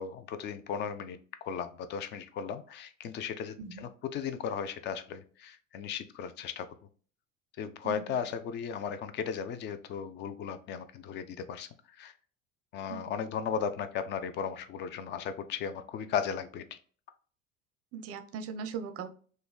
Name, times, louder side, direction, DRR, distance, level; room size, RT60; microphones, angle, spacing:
voice 1, 0.0-6.7 7.6-11.7 12.0-12.1 12.7-16.8, left 7 dB, 30° left, 10 dB, 0.3 m, -36 dB
voice 2, 7.8-8.2 12.9-13.1 17.9-19.1, right 6 dB, 40° right, 9 dB, 0.5 m, -40 dB
3.0 x 2.7 x 2.2 m, 0.43 s
figure-of-eight pair, 65°, 39 cm